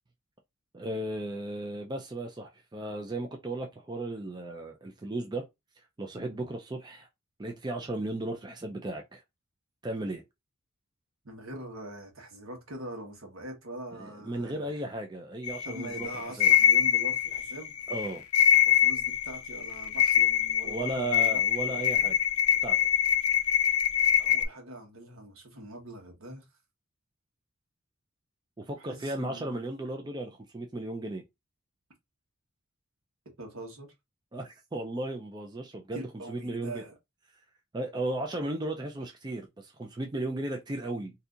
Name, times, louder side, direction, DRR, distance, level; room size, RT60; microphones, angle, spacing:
voice 1, 0.7-5.5 6.0-7.1 7.4-9.2 9.8-10.2 13.9-16.5 17.9-18.2 20.6-22.1 22.6-22.8 28.6-31.2 34.3-36.0 36.3-36.8 37.7-41.1, right 1 dB, 20° right, 0.4 m, -35 dB
voice 2, 11.2-14.9 15.6-17.7 18.7-22.1 24.2-26.5 28.8-29.6 33.4-33.9 35.9-36.9, right 1 dB, 70° right, 1.3 m, -43 dB
sound 1, 15.4-24.4, left 10 dB, 85° left, 0.5 m, -24 dB
4.0 x 2.7 x 2.4 m
head